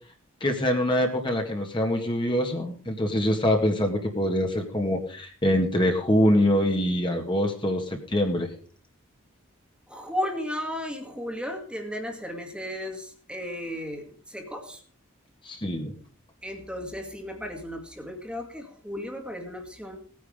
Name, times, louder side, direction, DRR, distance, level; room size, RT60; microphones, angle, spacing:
voice 1, 0.4-8.5 15.5-15.9, equal, 25° left, 3 dB, 1.9 m, -24 dB
voice 2, 9.9-14.8 16.4-20.0, left 1 dB, 5° right, 3 dB, 2.1 m, -34 dB
17.5 x 9.6 x 5.1 m, 0.42 s
head